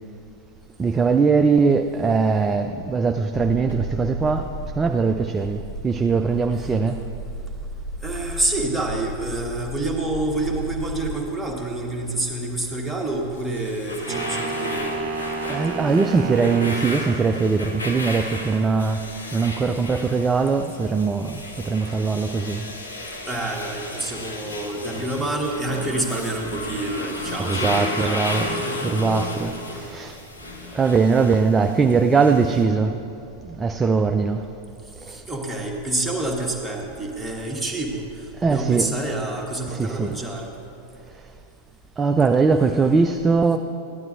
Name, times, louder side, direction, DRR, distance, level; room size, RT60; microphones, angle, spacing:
voice 1, 0.8-7.0 15.4-22.7 27.4-30.2 30.7-33.0 33.4-34.5 35.1-35.2 38.4-38.9 39.7-40.2 42.0-43.6, right 4 dB, 15° right, 6 dB, 0.3 m, -21 dB
sound 1, 3.3-11.1, right 1 dB, 55° left, 1.4 m, -34 dB
voice 2, 8.0-15.0 23.3-29.1 29.4-29.5 30.7-30.9 35.1-38.0 38.4-40.5, right 2 dB, ahead, -2 dB, 1.3 m, -28 dB
sound 2, 13.4-32.6, left 2 dB, 75° left, 1.0 m, -34 dB
sound 3, 14.1-16.9, right 3 dB, 40° right, 0.8 m, -30 dB
13.5 x 10.5 x 2.5 m, 2.7 s
figure-of-eight pair, 90°, 0 cm